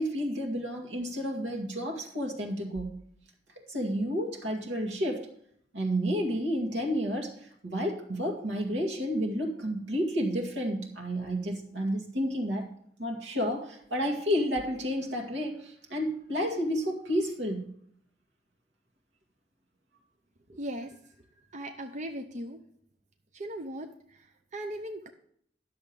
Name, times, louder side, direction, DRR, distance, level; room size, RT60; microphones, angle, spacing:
voice 1, 0.0-3.0 3.7-5.3 5.7-12.7 13.0-17.6, equal, 75° right, 1 dB, 1.9 m, -31 dB
voice 2, 20.5-20.9 21.5-22.6 23.3-23.9 24.5-25.1, right 1 dB, 40° right, 5 dB, 0.7 m, -37 dB
10.5 x 7.0 x 5.2 m, 0.65 s
head